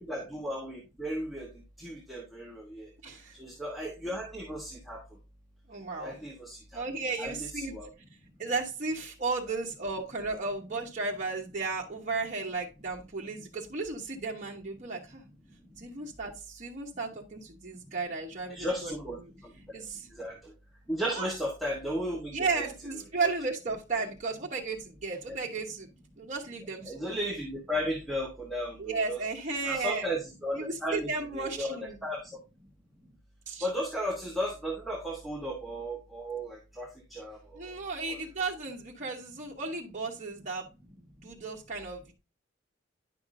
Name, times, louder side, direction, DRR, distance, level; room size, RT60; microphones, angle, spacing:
voice 1, 0.1-1.5 1.8-2.9 3.4-5.0 6.0-6.8 7.2-7.9 18.5-19.5 20.1-20.5 20.9-22.7 25.3-25.4 26.8-29.2 29.6-32.4 33.6-37.4 37.7-37.8 38.1-38.2, equal, ahead, -2 dB, 1.2 m, -35 dB
voice 2, 3.0-3.4 5.7-6.2 6.7-7.7 8.4-15.2 15.8-18.9 19.2-19.3 19.7-20.1 21.0-21.3 22.3-25.9 26.2-27.2 28.8-30.1 30.6-32.0 33.5-33.7 37.5-40.7 40.9-42.1, right 4 dB, 40° right, -2 dB, 1.1 m, -34 dB
9.9 x 5.8 x 2.6 m, 0.27 s
head